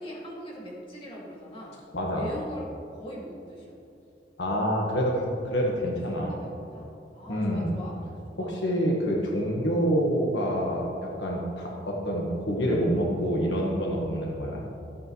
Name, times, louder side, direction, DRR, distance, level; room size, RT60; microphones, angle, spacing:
voice 1, 0.0-1.8 2.1-2.7 2.9-3.8 5.8-8.5, equal, 30° left, -6 dB, 2.4 m, -41 dB
voice 2, 1.9-2.3 4.4-6.3 7.3-7.7 8.4-14.6, equal, 80° left, -2 dB, 1.5 m, -27 dB
13.0 x 8.6 x 3.2 m, 2.8 s
head